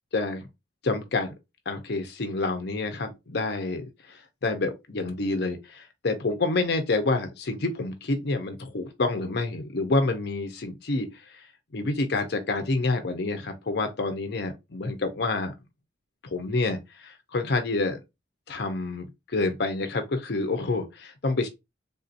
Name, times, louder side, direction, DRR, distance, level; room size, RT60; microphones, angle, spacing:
voice 1, 0.1-0.5 0.8-1.3 1.7-11.1 11.7-15.5 16.3-18.0 18.5-21.5, left 3 dB, 60° left, 0.6 m, -28 dB
3.5 x 2.8 x 2.5 m
head